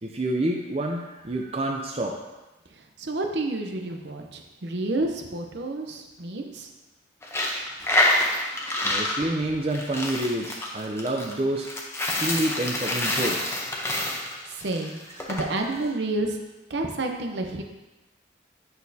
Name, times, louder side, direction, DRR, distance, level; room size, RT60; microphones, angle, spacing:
voice 1, 0.0-2.2 8.8-11.7 12.1-13.7, right 1 dB, 30° right, 1 dB, 0.5 m, -28 dB
voice 2, 2.7-6.7 14.6-15.0 15.3-16.4 16.7-17.6, right 2 dB, 65° right, 3 dB, 0.7 m, -29 dB
Coin (dropping), 7.2-15.4, left 1 dB, 15° left, 0.7 m, -27 dB
8.8 x 6.2 x 2.7 m, 1.1 s
head